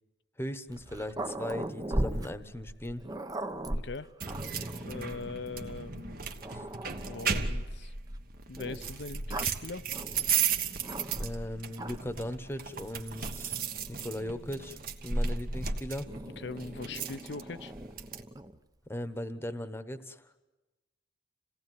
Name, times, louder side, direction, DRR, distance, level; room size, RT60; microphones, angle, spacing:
voice 1, 0.4-3.1 6.5-6.6 11.2-13.6 13.9-16.1 18.9-20.3, left 1 dB, 15° left, 11 dB, 1.2 m, -38 dB
Growling, 0.7-5.3 6.0-6.1 6.4-7.5 8.6-11.4 11.7-12.2 13.1-14.9 16.1-18.6, right 1 dB, 20° right, 0.8 m, -39 dB
voice 2, 3.7-4.1 4.8-6.2 7.0-7.9 8.5-9.9 16.4-17.7, left 3 dB, 60° left, 13 dB, 0.8 m, -41 dB
sound 1, 4.2-18.2, right 5 dB, 50° right, 1.4 m, -35 dB
27.5 x 17.5 x 9.5 m, 1.1 s
head